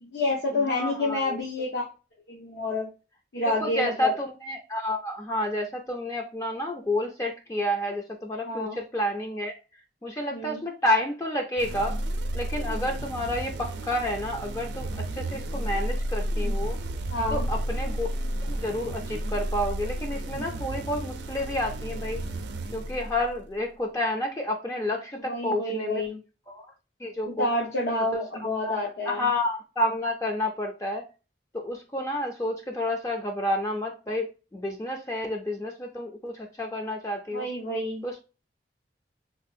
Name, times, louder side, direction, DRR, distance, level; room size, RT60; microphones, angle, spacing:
voice 1, 0.0-1.9 2.3-2.9 3.3-4.1 8.4-8.8 10.3-10.6 17.1-17.5 25.3-26.2 27.3-29.2 37.3-38.0, left 2 dB, 85° left, -3 dB, 0.8 m, -28 dB
voice 2, 0.7-1.4 3.5-9.5 10.0-12.0 12.3-16.8 17.3-18.1 18.4-22.2 22.7-26.0 26.5-26.7 27.0-27.5 28.1-28.2 28.6-28.8 29.1-31.0 31.5-37.5 38.0-38.2, left 1 dB, 15° left, 2 dB, 0.4 m, -30 dB
sound 1, 11.6-23.5, right 1 dB, 80° right, 0.5 m, -32 dB
3.5 x 2.3 x 2.5 m, 0.32 s
head